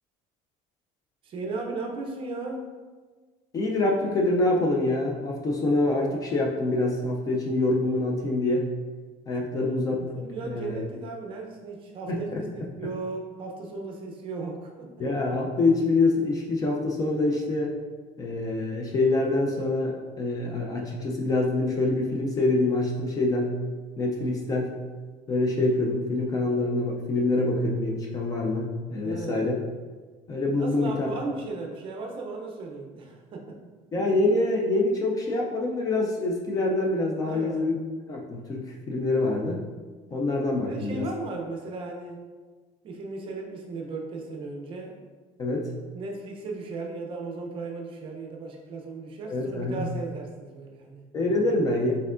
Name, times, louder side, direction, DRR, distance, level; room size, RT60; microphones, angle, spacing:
voice 1, 1.2-2.7 9.6-14.9 29.0-29.5 30.6-33.6 37.2-37.8 40.5-42.2 42.8-45.0 45.9-51.1, right 3 dB, 35° right, 1 dB, 0.5 m, -36 dB
voice 2, 3.5-8.7 9.3-10.8 12.1-12.4 15.0-17.8 18.2-23.5 24.0-24.7 25.3-29.5 30.3-31.1 33.9-37.7 38.1-39.6 40.1-41.1 45.4-45.7 49.3-49.9 51.1-51.9, left 2 dB, 25° left, -1 dB, 0.3 m, -25 dB
4.5 x 3.6 x 2.4 m, 1.4 s
cardioid pair, 165°, 15 cm